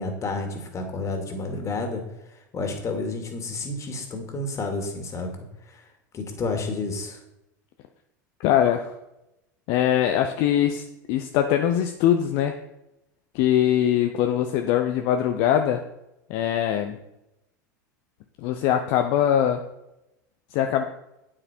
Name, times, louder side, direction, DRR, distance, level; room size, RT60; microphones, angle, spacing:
voice 1, 0.0-2.0 2.5-5.3 5.7-5.8 6.1-7.2, left 3 dB, 30° left, 4 dB, 2.4 m, -30 dB
voice 2, 8.4-8.9 9.7-10.8 11.1-12.6 13.3-15.8 16.3-17.0 18.4-19.6 20.5-20.8, left 10 dB, 55° left, 5 dB, 0.8 m, -22 dB
8.7 x 8.7 x 4.5 m, 0.88 s
hypercardioid pair, 90°, 10 cm